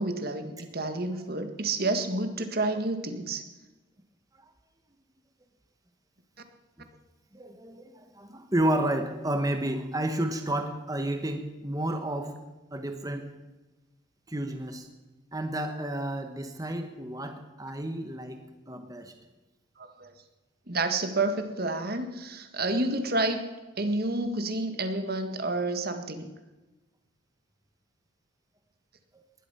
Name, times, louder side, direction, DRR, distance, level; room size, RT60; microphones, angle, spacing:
voice 1, 0.0-3.4 19.8-20.1 20.7-23.5 23.8-26.3, right 2 dB, 50° right, 8 dB, 1.7 m, -29 dB
voice 2, 7.3-12.3 12.7-13.3 14.3-14.9 15.3-18.4 18.7-19.1, right 1 dB, 20° right, 6 dB, 1.2 m, -31 dB
19.5 x 12.0 x 5.6 m, 1.1 s
head